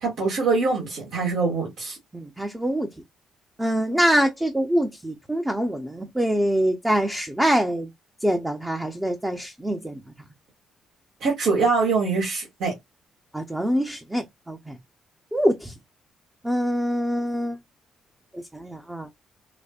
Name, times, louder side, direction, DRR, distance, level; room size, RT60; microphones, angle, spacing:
voice 1, 0.0-2.0 11.2-12.7, right 4 dB, 80° right, 1.7 m, -23 dB
voice 2, 2.1-2.9 3.6-7.9 8.2-10.0 13.3-14.8 15.3-15.7 16.4-17.6 18.3-19.1, equal, 10° right, 0.6 m, -24 dB
5.0 x 2.1 x 2.4 m
cardioid pair, 90°, 0 cm